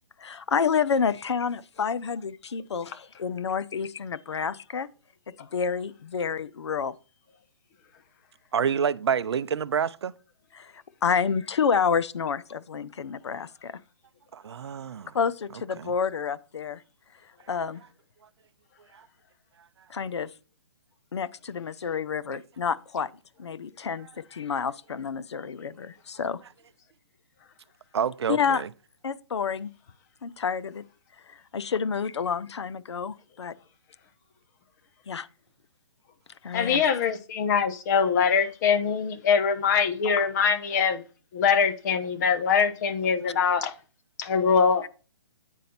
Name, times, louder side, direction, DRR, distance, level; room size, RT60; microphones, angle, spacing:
voice 1, 0.2-4.9 5.3-6.9 10.5-13.8 15.1-16.8 17.5-17.8 19.9-20.3 21.1-23.1 23.4-26.4 28.3-28.6 29.0-29.7 30.2-30.8 31.3-33.5 35.1-35.3 36.4-36.8, left 6 dB, 80° left, 0.5 m, -29 dB
voice 2, 8.5-10.1 14.3-15.2 15.8-15.9 18.9-19.0 27.9-28.7, right 7 dB, 70° right, 0.5 m, -28 dB
voice 3, 36.5-41.0 41.3-43.7 44.2-44.9, left 6 dB, 40° left, 1.0 m, -23 dB
8.2 x 5.1 x 4.2 m
hypercardioid pair, 140°, 14 cm